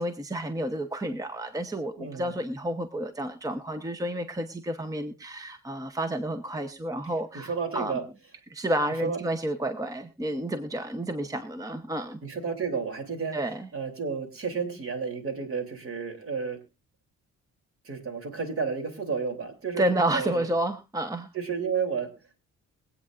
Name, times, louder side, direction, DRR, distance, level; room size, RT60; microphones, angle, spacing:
voice 1, 0.0-8.0 8.5-12.2 13.3-13.7 19.8-21.3, right 1 dB, 10° right, 9 dB, 0.9 m, -30 dB
voice 2, 2.0-2.4 7.3-8.0 9.0-9.2 12.2-13.4 13.7-16.6 17.8-19.9 20.1-20.5 21.3-22.1, right 5 dB, 45° right, 5 dB, 3.2 m, -31 dB
23.0 x 8.6 x 2.5 m, 0.27 s
cardioid pair, 90°, 30 cm